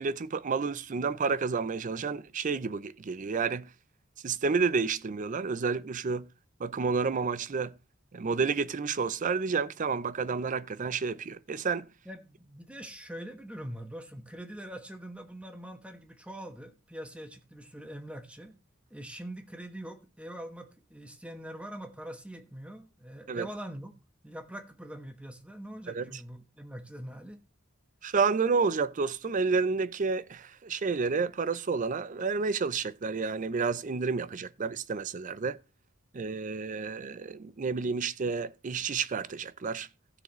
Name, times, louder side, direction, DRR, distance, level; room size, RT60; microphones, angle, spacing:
voice 1, 0.0-3.7 4.2-6.3 6.6-7.7 8.1-11.9 23.3-23.5 25.9-26.0 28.0-35.6 36.1-39.9, right 5 dB, 40° right, 0.5 m, -30 dB
voice 2, 12.0-18.5 18.9-23.9 24.2-27.4, right 1 dB, 5° right, 1.2 m, -43 dB
16.0 x 6.6 x 3.1 m
head